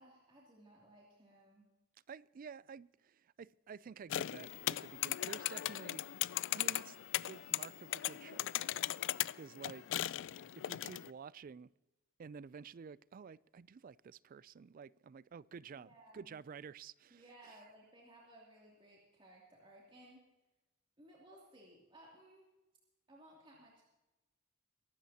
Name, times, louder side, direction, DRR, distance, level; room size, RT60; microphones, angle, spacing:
voice 1, 0.0-1.6 9.9-10.4 15.7-16.4 17.1-20.3 21.0-22.5 23.1-23.8, right 1 dB, 25° right, 2.7 m, -60 dB
voice 2, 2.1-6.1 6.3-7.0 7.2-8.5 9.4-10.0 10.6-11.7 12.2-17.6, right 6 dB, 40° right, 0.3 m, -51 dB
sound 1, 4.1-11.1, left 13 dB, 60° left, 0.3 m, -38 dB
23.5 x 12.5 x 2.8 m
head